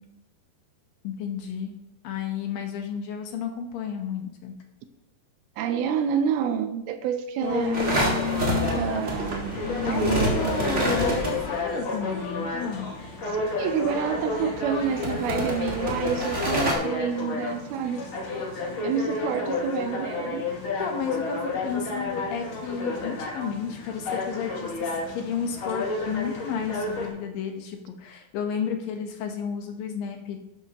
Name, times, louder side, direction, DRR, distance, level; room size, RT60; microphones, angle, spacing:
voice 1, 1.0-1.7 2.0-4.6 9.9-12.9 20.8-30.4, left 7 dB, 70° left, 4 dB, 2.4 m, -32 dB
voice 2, 5.6-7.8 8.7-9.6 9.8-10.9 13.3-18.1 18.8-20.4, right 8 dB, 80° right, 8 dB, 2.5 m, -28 dB
sound 1, 7.4-27.1, left 3 dB, 45° left, 3.1 m, -31 dB
sound 2, 7.7-11.8 13.7-16.7, right 1 dB, 40° right, 1.0 m, -29 dB
12.0 x 10.5 x 2.9 m, 0.88 s
omnidirectional pair, 4.6 m